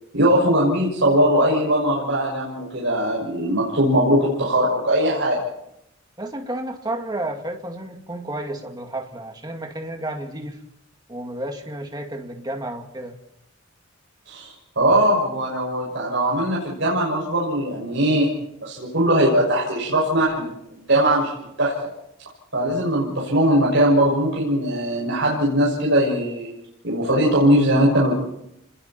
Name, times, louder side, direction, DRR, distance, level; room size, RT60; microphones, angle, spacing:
voice 1, 0.1-5.4 14.3-18.3 18.6-20.5 20.9-21.9 22.5-26.5 26.8-28.1, right 1 dB, 65° right, -4 dB, 6.4 m, -20 dB
voice 2, 6.2-10.6 11.1-13.2, right 1 dB, 20° right, 3 dB, 2.3 m, -31 dB
28.5 x 21.5 x 4.4 m, 0.80 s
head